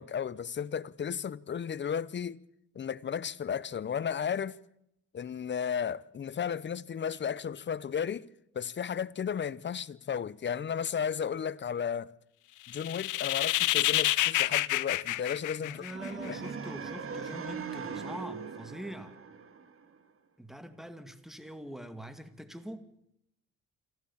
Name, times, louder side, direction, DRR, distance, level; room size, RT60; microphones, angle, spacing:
voice 1, 0.0-2.4 2.7-4.6 5.1-8.2 8.5-12.1 12.7-15.9 16.2-16.4, left 7 dB, 40° left, 0.8 m, -34 dB
sound 1, 12.7-16.3, left 16 dB, 80° left, 0.7 m, -28 dB
voice 2, 15.6-19.2 20.4-22.9, equal, ahead, 2.1 m, -44 dB
sound 2, 15.9-20.0, right 5 dB, 45° right, 2.4 m, -40 dB
26.0 x 14.5 x 7.2 m
cardioid pair, 90°, 30 cm